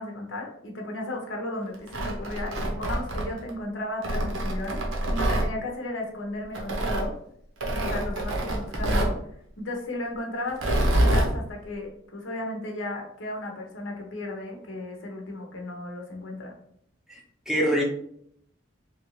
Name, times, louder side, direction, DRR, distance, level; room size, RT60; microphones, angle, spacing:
voice 1, 0.0-7.2 7.7-9.2 9.6-16.5, left 1 dB, 75° left, 1 dB, 0.8 m, -35 dB
Tearing, 1.7-3.5 4.0-5.5 6.6-7.1 7.6-9.2 10.5-11.3, right 1 dB, 75° right, 0.7 m, -26 dB
voice 2, 17.1-17.8, equal, ahead, -2 dB, 0.6 m, -25 dB
3.2 x 2.5 x 3.0 m, 0.68 s
head